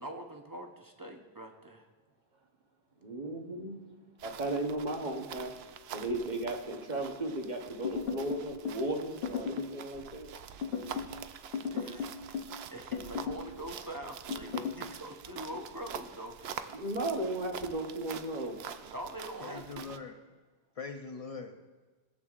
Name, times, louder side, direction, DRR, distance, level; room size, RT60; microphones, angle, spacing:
voice 1, 0.0-1.9 10.8-10.9 11.7-12.4 12.7-16.5 18.9-19.9, right 1 dB, 20° right, 3 dB, 0.7 m, -44 dB
voice 2, 3.0-3.8 4.2-5.5 5.9-10.3 16.7-18.6, right 1 dB, 45° right, 2 dB, 1.2 m, -35 dB
sound 1, 4.2-20.0, right 8 dB, 70° right, 0.8 m, -46 dB
sound 2, 7.8-8.8 9.2-9.8 10.6-11.2 11.5-12.6 12.9-13.5 14.3-14.8, left 6 dB, 65° left, 0.9 m, -36 dB
voice 3, 19.4-20.2 20.8-21.6, left 4 dB, 40° left, 6 dB, 0.6 m, -42 dB
18.0 x 8.2 x 2.4 m, 1.3 s
omnidirectional pair, 1.1 m